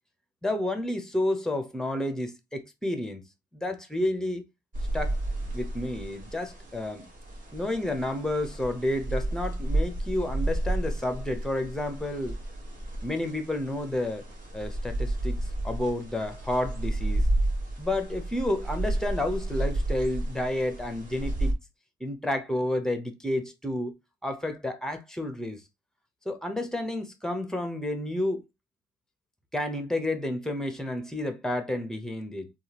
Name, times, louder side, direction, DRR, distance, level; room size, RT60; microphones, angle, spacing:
voice 1, 0.4-3.2 3.5-4.4 4.9-5.2 5.5-7.1 7.5-12.4 13.0-14.3 14.5-17.3 17.8-21.5 22.0-23.9 24.2-25.6 26.3-28.4 29.5-32.5, left 1 dB, 5° left, 0.8 m, -30 dB
sound 1, 4.7-21.5, right 1 dB, 45° right, 1.5 m, -31 dB
3.5 x 2.4 x 2.9 m
cardioid pair, 90°, 20 cm